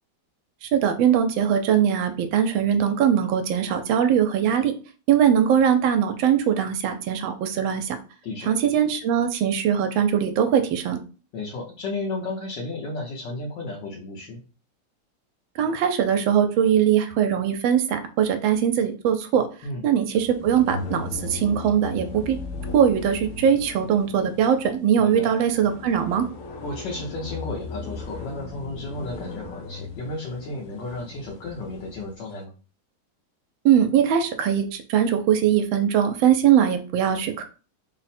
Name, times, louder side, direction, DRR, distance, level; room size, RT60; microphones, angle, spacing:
voice 1, 0.6-4.7 5.1-8.0 8.4-11.0 15.6-19.5 19.8-22.4 22.7-26.3 33.6-37.4, right 8 dB, 85° right, 7 dB, 1.3 m, -21 dB
voice 2, 11.3-14.4 19.6-19.8 25.0-25.3 26.6-32.5, left 2 dB, 70° left, -3 dB, 1.5 m, -33 dB
sound 1, 20.1-32.2, left 4 dB, 90° left, 0.7 m, -37 dB
3.6 x 2.1 x 4.1 m, 0.36 s
omnidirectional pair, 2.1 m